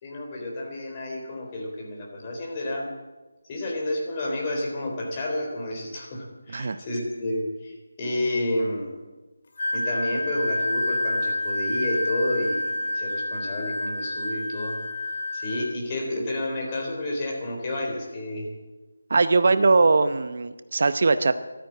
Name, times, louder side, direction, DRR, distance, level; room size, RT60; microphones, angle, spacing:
voice 1, 0.0-2.9 3.5-8.9 9.7-14.8 15.3-18.5, left 1 dB, 25° left, 0 dB, 3.9 m, -30 dB
Wind instrument woodwind instrument, 9.6-15.7, left 2 dB, 45° left, 2.3 m, -28 dB
voice 2, 19.1-21.3, right 3 dB, 50° right, 11 dB, 0.7 m, -20 dB
15.0 x 13.0 x 7.6 m, 1.2 s
figure-of-eight pair, 165°, 0 cm